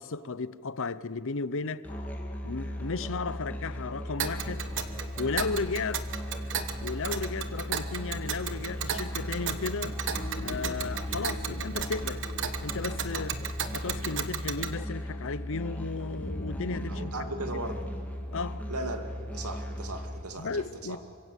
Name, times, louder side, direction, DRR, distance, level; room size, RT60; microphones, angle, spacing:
voice 1, 0.0-1.8 2.4-4.7 5.2-6.1 6.8-10.0 10.4-12.2 12.6-13.5 13.7-17.1 18.3-18.7 20.4-21.0, left 4 dB, 65° left, 0.8 m, -34 dB
Musical instrument, 1.8-20.2, left 1 dB, 5° left, 2.5 m, -37 dB
sound 1, 1.9-3.7 4.7-6.8 10.1-13.8 16.1-19.0, left 1 dB, 35° left, 1.9 m, -44 dB
Tick, 4.2-14.7, right 7 dB, 60° right, 1.4 m, -35 dB
voice 2, 16.9-17.8 18.7-21.0, right 2 dB, 90° right, 2.4 m, -37 dB
26.5 x 24.5 x 8.3 m
head